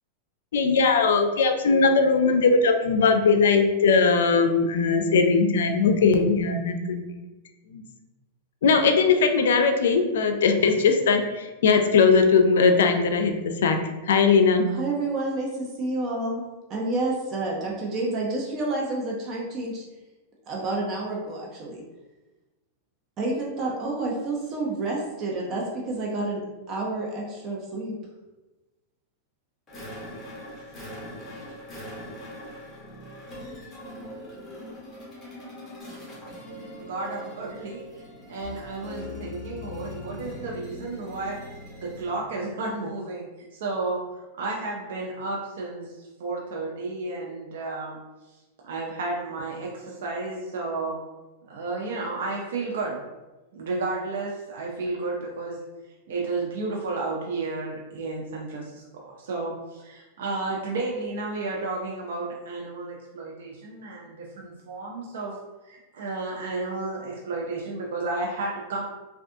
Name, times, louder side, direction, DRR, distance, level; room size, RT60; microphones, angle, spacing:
voice 1, 0.5-7.0 7.7-7.8 8.6-13.4 13.6-13.8 14.1-14.7, left 4 dB, 85° left, 6 dB, 0.4 m, -20 dB
voice 2, 14.7-16.4 16.7-19.8 20.5-21.8 23.2-26.4 26.7-27.9, right 2 dB, 35° right, -2 dB, 0.6 m, -29 dB
sound 1, 29.7-42.2, left 1 dB, 20° left, 1.2 m, -41 dB
voice 3, 36.8-38.0 38.3-41.4 41.8-48.0 48.6-51.0 51.5-53.0 53.5-55.6 56.1-65.4 65.6-68.8, right 3 dB, 75° right, -2 dB, 0.5 m, -32 dB
3.3 x 2.3 x 2.6 m, 1.1 s
hypercardioid pair, 130°, 0 cm